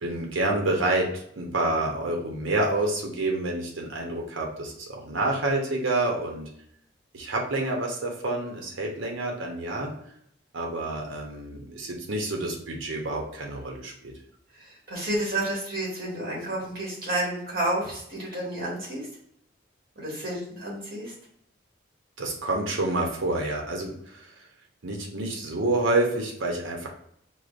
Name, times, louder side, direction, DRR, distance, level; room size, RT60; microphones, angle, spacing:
voice 1, 0.0-6.5 7.1-9.9 10.5-14.1 22.2-24.3 24.8-26.9, right 2 dB, 85° right, 0 dB, 0.7 m, -28 dB
voice 2, 14.6-19.1 19.9-21.1, right 1 dB, 50° right, -4 dB, 1.5 m, -30 dB
4.8 x 2.0 x 2.5 m, 0.69 s
head